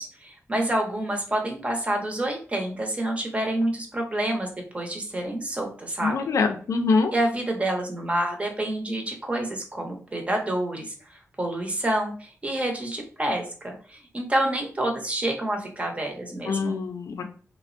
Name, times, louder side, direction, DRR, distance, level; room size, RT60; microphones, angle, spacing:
voice 1, 0.0-4.5 4.7-6.2 7.1-16.8, right 1 dB, 25° right, 2 dB, 0.6 m, -28 dB
voice 2, 6.0-7.1 16.5-17.3, left 4 dB, 85° left, 6 dB, 0.4 m, -24 dB
3.3 x 2.0 x 2.5 m, 0.41 s
wide cardioid pair, 135°, 5 cm